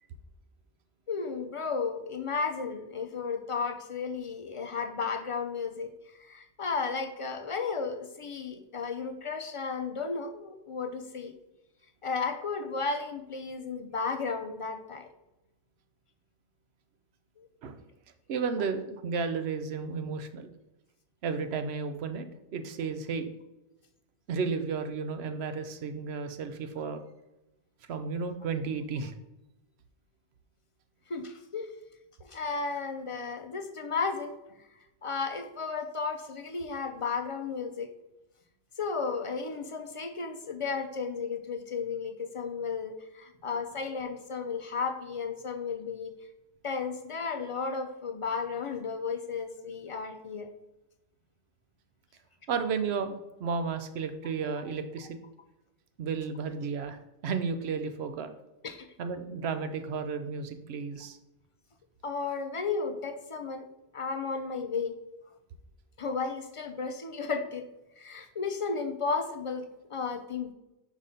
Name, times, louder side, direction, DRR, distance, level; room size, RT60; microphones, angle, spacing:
voice 1, 1.1-5.9 6.2-11.3 12.0-15.1 17.4-17.5 31.1-31.7 32.2-34.3 35.0-37.9 38.8-46.1 46.6-50.5 58.6-58.9 62.0-63.7 63.9-64.9 66.0-67.7 68.0-70.5, left 5 dB, 45° left, 7 dB, 0.4 m, -34 dB
voice 2, 18.3-20.5 21.2-22.3 22.5-23.3 24.3-27.0 27.9-29.1 52.5-55.2 56.0-58.3 59.0-61.2, right 5 dB, 75° right, 8 dB, 0.9 m, -33 dB
5.2 x 4.1 x 5.0 m, 0.95 s
omnidirectional pair, 1.1 m